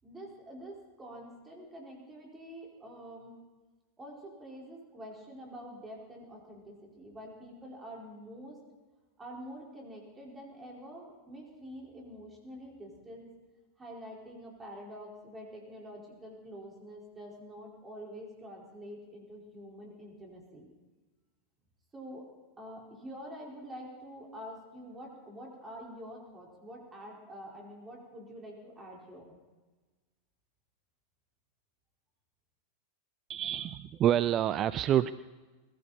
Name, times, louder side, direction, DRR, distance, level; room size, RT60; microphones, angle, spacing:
voice 1, 0.0-3.4 4.0-8.6 9.2-13.3 13.8-20.7 21.9-22.3 22.6-29.2, equal, 15° right, -2 dB, 4.9 m, -47 dB
voice 2, 33.3-35.1, right 11 dB, 35° right, 15 dB, 0.4 m, -27 dB
21.0 x 15.5 x 4.3 m, 1.2 s
figure-of-eight pair, 90°, 0 cm